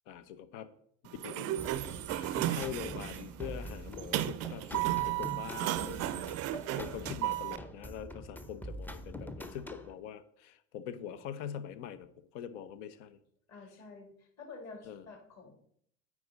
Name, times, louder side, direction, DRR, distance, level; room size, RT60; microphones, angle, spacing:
voice 1, 0.1-0.7 1.2-1.7 2.1-6.4 6.7-13.2 14.9-15.0, left 9 dB, 65° left, 13 dB, 0.8 m, -44 dB
Sliding door, 1.1-7.6, right 14 dB, 40° right, 0.5 m, -34 dB
sound 1, 1.6-9.9, equal, 5° left, 0.6 m, -45 dB
voice 2, 6.9-7.7 13.5-15.5, left 3 dB, 40° left, 1 dB, 2.9 m, -50 dB
8.9 x 4.9 x 4.1 m, 0.67 s
hypercardioid pair, 80°, 39 cm